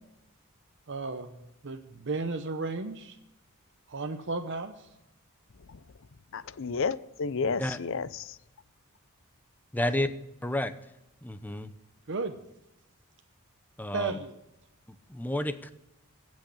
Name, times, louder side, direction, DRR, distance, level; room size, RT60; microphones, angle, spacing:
voice 1, 0.9-3.2 3.9-4.9 12.1-12.4 13.9-14.3, right 3 dB, 55° right, 6 dB, 0.9 m, -34 dB
voice 2, 6.3-8.4, left 5 dB, 60° left, 17 dB, 0.6 m, -32 dB
voice 3, 9.7-10.1 10.4-10.7 11.2-11.7 13.8-14.2 14.9-15.7, left 1 dB, 10° left, 11 dB, 0.7 m, -31 dB
16.0 x 6.4 x 8.5 m, 0.89 s
head